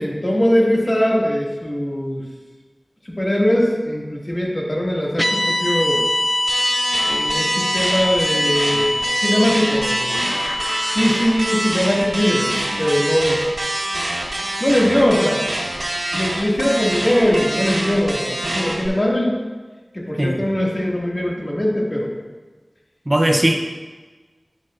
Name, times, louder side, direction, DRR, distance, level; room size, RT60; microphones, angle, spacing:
voice 1, 0.0-2.2 3.1-6.0 7.1-10.3 10.9-13.4 14.6-15.5 16.1-19.3 19.9-22.1, equal, 40° left, -3 dB, 1.9 m, -20 dB
sound 1, 5.2-13.5, left 1 dB, 15° left, 0.4 m, -24 dB
sound 2, 6.5-18.9, right 1 dB, 80° right, 2.3 m, -25 dB
sound 3, 10.0-12.3, equal, 65° left, 2.2 m, -36 dB
voice 2, 23.1-23.6, right 1 dB, 35° right, 3 dB, 0.6 m, -18 dB
9.6 x 8.5 x 2.5 m, 1.3 s
wide cardioid pair, 50°, 0 cm